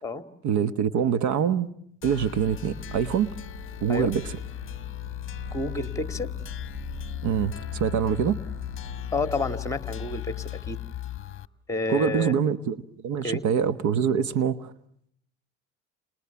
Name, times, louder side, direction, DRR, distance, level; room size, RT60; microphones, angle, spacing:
voice 1, 0.4-1.7 2.0-3.3 3.8-4.3 7.2-8.4 11.9-12.8 13.0-14.7, right 8 dB, 55° right, 1.3 m, -25 dB
sound 1, 2.0-11.5, left 13 dB, 35° left, 1.2 m, -36 dB
sound 2, 2.8-9.4, right 4 dB, 75° right, 4.5 m, -44 dB
voice 2, 5.5-6.3 9.1-10.8 11.7-12.3 13.2-13.4, left 2 dB, 10° left, 2.1 m, -30 dB
29.5 x 28.5 x 7.0 m
hypercardioid pair, 85°, 35 cm